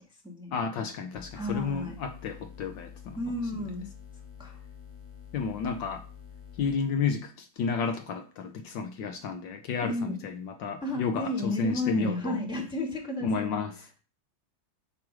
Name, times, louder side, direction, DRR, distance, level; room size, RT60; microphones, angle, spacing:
voice 1, 0.5-3.2 5.3-6.0 6.6-12.4 13.2-13.7, left 5 dB, 70° left, 1.4 m, -31 dB
sound 1, 1.1-6.8, left 8 dB, 30° left, 0.6 m, -47 dB
voice 2, 1.3-1.9 3.1-3.9 4.4-4.6 9.8-10.2 10.8-13.6, left 1 dB, 5° right, 1.3 m, -32 dB
8.6 x 3.1 x 6.1 m
omnidirectional pair, 2.2 m